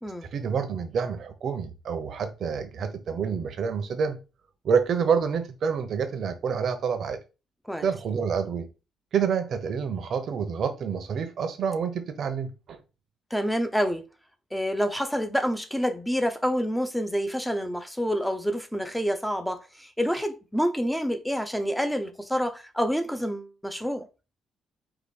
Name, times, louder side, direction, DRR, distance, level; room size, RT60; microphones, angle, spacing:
voice 1, 0.2-4.2 4.6-7.2 7.8-8.7 9.1-12.8, right 6 dB, 60° right, 0.9 m, -28 dB
voice 2, 13.3-14.1 14.5-24.1, equal, 5° left, 0.8 m, -28 dB
4.9 x 2.6 x 4.2 m
cardioid pair, 90°, 0 cm